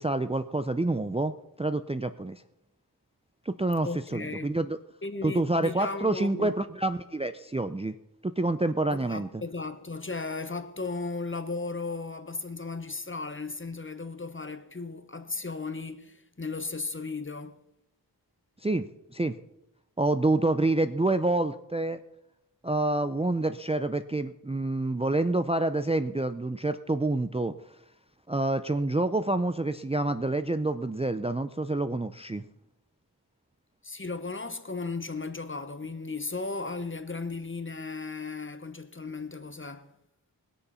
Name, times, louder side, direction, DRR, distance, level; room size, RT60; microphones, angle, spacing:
voice 1, 0.0-1.3 1.6-2.4 3.5-4.8 5.2-7.9 8.2-9.3 18.6-19.4 20.0-22.0 22.6-27.6 28.3-32.4, right 2 dB, 15° right, 0.5 m, -27 dB
voice 2, 3.8-4.5 5.0-6.6 8.9-17.6 33.8-39.9, left 3 dB, 30° left, 1.0 m, -36 dB
20.0 x 6.9 x 5.6 m
wide cardioid pair, 65°, 40 cm